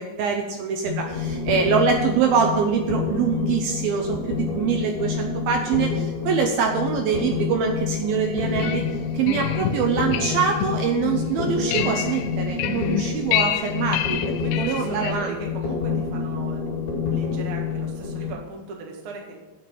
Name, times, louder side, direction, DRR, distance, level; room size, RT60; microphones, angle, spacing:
voice 1, 0.0-8.9 9.1-15.4, right 6 dB, 75° right, 3 dB, 2.5 m, -24 dB
sound 1, 0.8-18.3, left 5 dB, 45° left, 2.4 m, -28 dB
sound 2, 8.3-15.1, left 11 dB, 80° left, 2.2 m, -29 dB
voice 2, 14.4-19.4, right 3 dB, 45° right, 0 dB, 1.8 m, -38 dB
8.3 x 7.2 x 8.4 m, 1.1 s
omnidirectional pair, 4.9 m